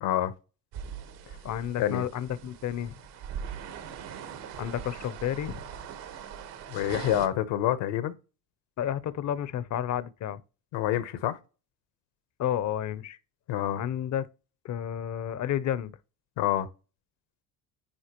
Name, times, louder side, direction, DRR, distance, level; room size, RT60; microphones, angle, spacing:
voice 1, 0.0-0.3 1.3-1.4 1.8-2.0 6.7-8.1 10.7-11.4 13.5-13.8 16.4-16.7, left 12 dB, 70° left, 1.0 m, -27 dB
sound 1, 0.7-7.3, right 8 dB, 70° right, 1.5 m, -41 dB
voice 2, 1.4-2.9 4.6-5.6 8.8-10.4 12.4-13.2 13.8-14.3 14.6-15.9, left 10 dB, 40° left, 0.7 m, -31 dB
10.0 x 3.9 x 3.0 m
supercardioid pair, 95°, 44 cm